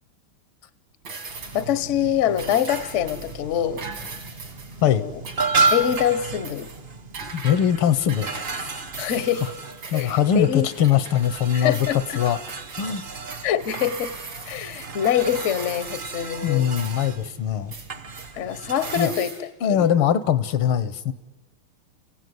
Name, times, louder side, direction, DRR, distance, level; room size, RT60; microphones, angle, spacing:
sound 1, 1.0-1.8 2.3-3.4 3.8-4.8 5.2-6.2 6.4-6.8 7.1-7.6 8.1-8.6 8.9-10.2 10.7-11.5 11.7-12.8 13.3-16.3 16.8-17.3 17.7-18.3 18.8-19.4, right 4 dB, 75° right, 4.2 m, -39 dB
sound 2, 1.2-19.1, right 3 dB, 50° right, 0.6 m, -32 dB
voice 1, 1.5-3.9 4.8-5.1 5.7-6.7 9.0-9.4 9.9-10.7 11.5-12.2 13.4-14.1 14.5-16.7 18.3-19.3 19.7-19.8, left 10 dB, 55° left, 15 dB, 0.8 m, -24 dB
voice 2, 7.3-8.4 9.9-12.4 12.8-13.0 16.4-17.7 19.0-19.1 19.6-21.1, left 9 dB, 80° left, 15 dB, 1.8 m, -21 dB
29.0 x 16.5 x 9.5 m, 1.3 s
omnidirectional pair, 2.4 m